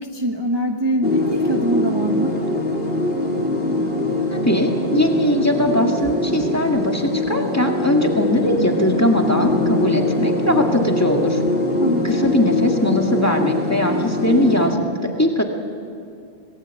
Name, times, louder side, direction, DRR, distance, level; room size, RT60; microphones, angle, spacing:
voice 1, 0.0-2.4 11.8-12.3, right 1 dB, 25° right, 2 dB, 1.3 m, -23 dB
sound 1, 1.0-14.7, left 2 dB, 60° left, 2.6 m, -22 dB
voice 2, 4.3-11.4 12.0-14.8 15.0-15.4, equal, 15° left, 2 dB, 2.0 m, -20 dB
27.0 x 19.0 x 8.3 m, 2.4 s
omnidirectional pair, 1.1 m